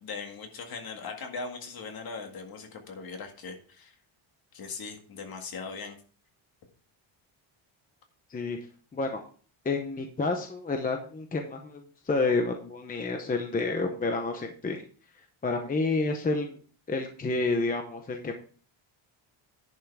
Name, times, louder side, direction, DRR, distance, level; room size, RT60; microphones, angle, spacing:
voice 1, 0.0-4.0 4.5-6.0, left 4 dB, 45° left, 4 dB, 2.0 m, -39 dB
voice 2, 9.6-14.8 15.4-16.6 16.9-18.3, left 3 dB, 15° left, 4 dB, 0.8 m, -29 dB
10.5 x 5.7 x 4.7 m, 0.42 s
cardioid pair, 180°, 49 cm